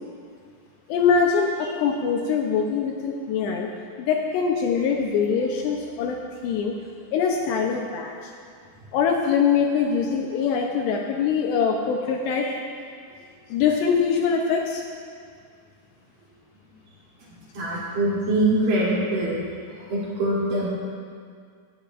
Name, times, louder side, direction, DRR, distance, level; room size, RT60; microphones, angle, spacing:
voice 1, 0.9-3.7 4.0-6.8 7.1-8.3 8.9-12.6 13.5-14.8, left 6 dB, 80° left, 1 dB, 2.7 m, -23 dB
voice 2, 17.3-19.4 19.7-20.7, right 1 dB, 50° right, -8 dB, 4.3 m, -24 dB
18.5 x 12.0 x 2.5 m, 2.1 s
omnidirectional pair, 5.3 m